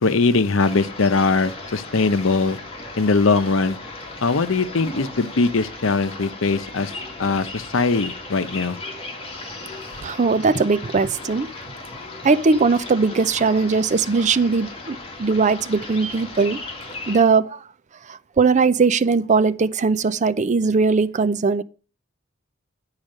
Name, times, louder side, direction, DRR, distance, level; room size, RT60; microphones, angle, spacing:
voice 1, 0.0-2.6 3.0-3.8 4.2-6.9 7.2-8.8, left 3 dB, 85° left, 0.7 m, -21 dB
sound 1, 0.6-17.2, left 2 dB, 30° left, 2.1 m, -36 dB
voice 2, 10.0-11.5 12.2-16.6 17.1-17.6 18.1-21.6, right 4 dB, 35° right, 0.5 m, -19 dB
10.5 x 4.9 x 6.4 m
head